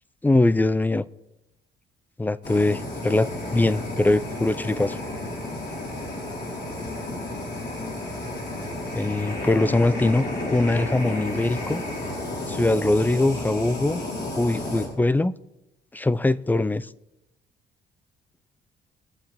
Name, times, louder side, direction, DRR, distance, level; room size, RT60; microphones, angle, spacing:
voice 1, 0.2-1.0 2.2-5.0 8.9-11.8 12.5-14.0 14.4-15.3 15.9-16.9, left 2 dB, 10° left, 0.4 m, -22 dB
Fire, 2.4-14.9, left 1 dB, 55° left, 4.6 m, -32 dB
22.0 x 7.5 x 3.6 m
cardioid pair, 90°, 20 cm